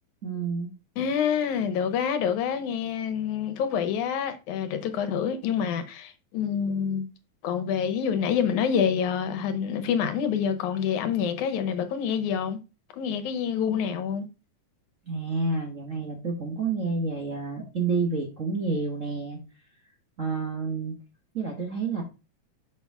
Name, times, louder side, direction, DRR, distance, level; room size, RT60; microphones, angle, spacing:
voice 1, 0.2-0.7 15.1-19.4 20.2-20.9 21.3-22.0, right 4 dB, 50° right, 0.9 m, -29 dB
voice 2, 1.0-7.1 7.4-12.6 13.0-14.3, left 7 dB, 85° left, 2.4 m, -27 dB
6.3 x 6.0 x 3.5 m
omnidirectional pair, 3.3 m